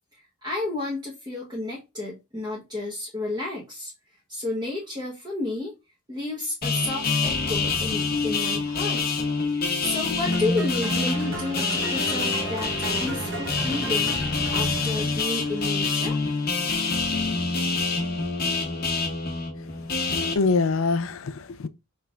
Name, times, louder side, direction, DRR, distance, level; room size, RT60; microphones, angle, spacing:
voice 1, 0.4-3.9 4.3-5.7 6.1-9.1 9.5-12.7 13.0-16.2, left 2 dB, 20° right, 1.1 m, -31 dB
sound 1, 6.6-20.3, left 4 dB, 45° left, 0.9 m, -26 dB
sound 2, 10.3-16.4, right 2 dB, 60° right, 1.1 m, -36 dB
voice 2, 20.1-21.7, left 4 dB, 65° left, 0.5 m, -24 dB
5.6 x 3.3 x 2.5 m
head